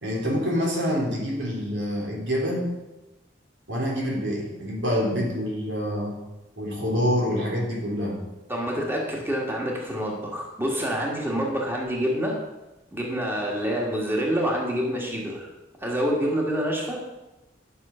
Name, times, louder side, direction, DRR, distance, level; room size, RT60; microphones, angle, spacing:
voice 1, 0.0-2.7 3.7-6.2 6.6-8.2, equal, 80° right, -1 dB, 2.9 m, -26 dB
voice 2, 8.5-12.4 12.9-15.5 15.8-17.0, equal, 15° right, -2 dB, 1.7 m, -27 dB
11.5 x 6.3 x 5.6 m, 1.0 s
head